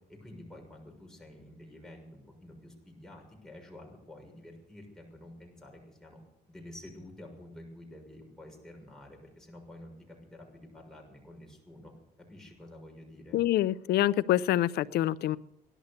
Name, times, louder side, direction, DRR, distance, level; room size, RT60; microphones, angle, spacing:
voice 1, 0.1-6.2 6.5-11.9 12.3-13.4, left 1 dB, 5° left, 6.4 m, -49 dB
voice 2, 13.3-15.4, left 13 dB, 70° left, 0.6 m, -26 dB
17.5 x 12.0 x 6.7 m
cardioid pair, 110°, 17 cm